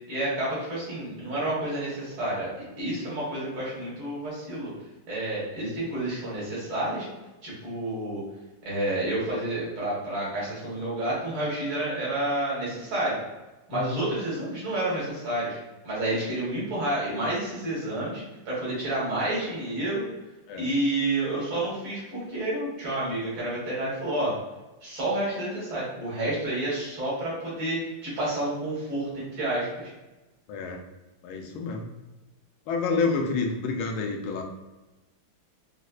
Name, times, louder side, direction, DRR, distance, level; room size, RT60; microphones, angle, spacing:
voice 1, 0.1-2.5 2.8-4.7 5.1-7.1 7.4-8.2 8.6-13.2 13.7-15.6 15.8-20.0 20.5-24.3 24.8-29.9, right 1 dB, 70° right, -7 dB, 2.3 m, -29 dB
voice 2, 13.7-14.0 20.5-20.7 30.5-30.8 31.2-31.9 32.7-34.4, left 4 dB, 85° left, 2 dB, 1.5 m, -28 dB
5.1 x 2.1 x 2.4 m, 1.1 s
omnidirectional pair, 2.3 m